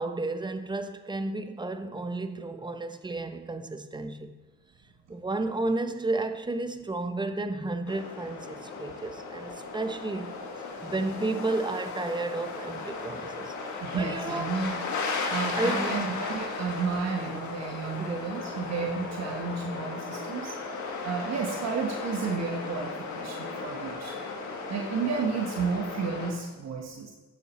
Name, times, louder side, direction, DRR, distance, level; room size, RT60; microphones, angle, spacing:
voice 1, 0.0-4.3 5.1-10.3 10.8-14.5 15.5-16.0 18.0-18.2, right 2 dB, 15° right, 0.7 m, -32 dB
sound 1, 7.9-26.3, left 4 dB, 75° left, 1.6 m, -36 dB
voice 2, 13.8-14.7 15.3-20.5 21.0-24.2 24.7-27.1, right 5 dB, 60° right, 1.3 m, -32 dB
11.0 x 7.0 x 4.1 m
cardioid pair, 90°, 30 cm